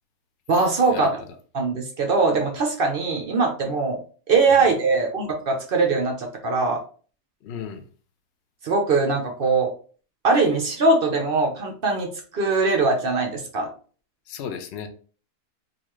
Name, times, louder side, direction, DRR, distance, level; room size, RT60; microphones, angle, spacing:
voice 1, 0.5-1.2 1.5-4.0 4.3-6.8 8.6-9.7 10.2-12.1 12.3-13.7, right 3 dB, 55° right, 2 dB, 0.6 m, -21 dB
voice 2, 7.4-7.8 14.3-14.9, left 7 dB, 60° left, 6 dB, 0.6 m, -34 dB
4.0 x 2.4 x 3.0 m, 0.40 s
omnidirectional pair, 1.7 m